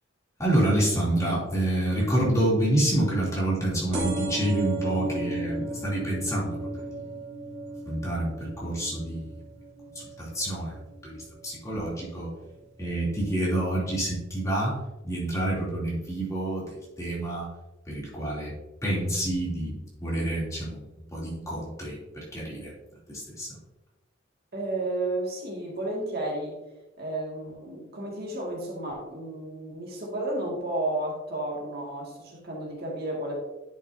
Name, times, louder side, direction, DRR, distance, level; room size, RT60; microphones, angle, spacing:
voice 1, 0.4-7.0 7.9-9.4 9.9-12.3 12.8-14.8 15.0-17.5 17.9-18.5 18.8-20.8 21.1-22.7 23.1-23.6, right 1 dB, 15° left, -6 dB, 2.9 m, -28 dB
sound 1, 3.9-11.2 11.6-12.1 13.0-13.1 13.3-13.4 13.6-13.7, right 1 dB, 35° right, 3.0 m, -35 dB
voice 2, 24.5-26.6 27.0-33.4, right 1 dB, 50° right, -2 dB, 2.1 m, -32 dB
10.5 x 6.5 x 2.7 m, 1.0 s
head